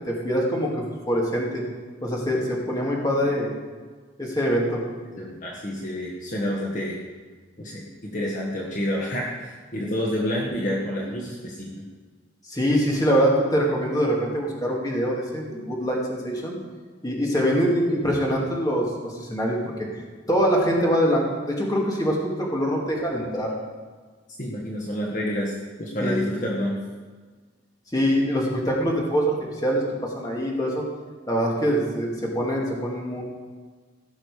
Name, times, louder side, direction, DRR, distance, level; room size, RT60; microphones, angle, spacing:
voice 1, 0.1-1.6 2.0-3.5 4.2-4.8 12.5-16.6 17.0-19.6 20.3-23.5 26.0-26.2 27.9-30.9 31.3-33.2, equal, 20° left, -2 dB, 2.2 m, -24 dB
voice 2, 5.2-7.0 7.6-11.9 24.4-26.8, equal, 40° left, -3 dB, 1.4 m, -29 dB
16.5 x 6.4 x 4.9 m, 1.5 s
head